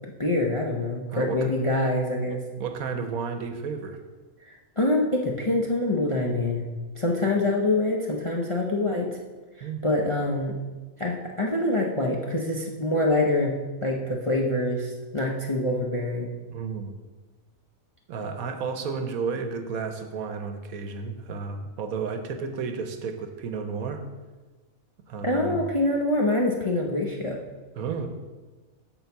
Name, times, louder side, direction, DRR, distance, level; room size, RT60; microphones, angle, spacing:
voice 1, 0.2-2.4 4.8-6.7 7.0-9.1 9.6-10.6 11.0-13.5 13.8-16.3 25.2-27.4, left 2 dB, 30° left, 0 dB, 0.6 m, -25 dB
voice 2, 1.1-1.5 2.3-4.0 9.6-9.8 16.5-17.0 18.1-24.0 25.1-25.6 27.8-28.1, right 5 dB, 75° right, 7 dB, 1.2 m, -32 dB
9.0 x 4.0 x 6.9 m, 1.3 s
omnidirectional pair, 1.5 m